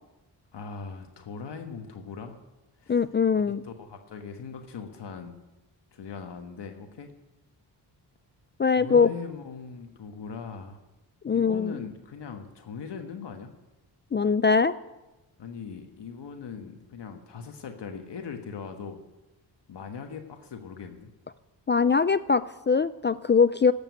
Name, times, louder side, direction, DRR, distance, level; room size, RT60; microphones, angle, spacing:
voice 1, 0.5-2.4 2.8-3.0 3.6-5.4 5.9-7.1 8.7-10.8 11.3-13.5 15.4-19.0 19.7-21.1, left 6 dB, 65° left, 5 dB, 1.5 m, -40 dB
voice 2, 2.9-3.6 8.6-9.1 11.2-11.7 14.1-14.7 21.7-23.7, left 5 dB, 25° left, 15 dB, 0.3 m, -22 dB
12.0 x 8.4 x 9.3 m, 1.0 s
cardioid pair, 75°, 45 cm